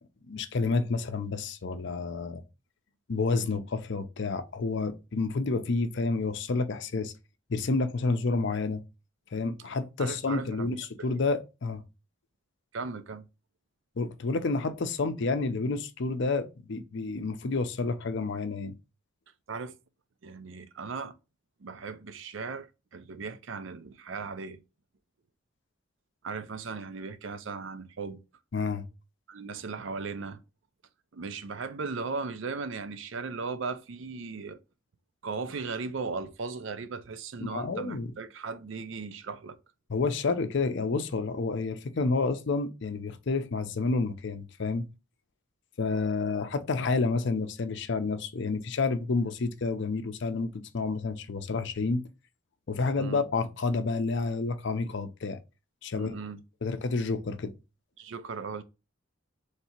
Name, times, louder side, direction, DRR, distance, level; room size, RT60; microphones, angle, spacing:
voice 1, 0.3-2.4 3.1-7.1 7.5-8.8 9.3-11.8 14.0-18.7 28.5-28.9 37.4-38.1 39.9-44.9 45.8-52.0 52.7-55.4 55.8-56.1 56.6-57.5, left 3 dB, 60° left, 0.5 m, -29 dB
voice 2, 10.0-11.2 12.7-13.2 19.5-19.7 20.2-21.1 21.6-24.6 26.2-28.2 29.3-30.4 31.1-34.6 35.2-39.6 53.0-53.2 55.9-56.4 58.0-58.6, right 4 dB, 65° right, 0.5 m, -37 dB
3.3 x 2.8 x 4.3 m
head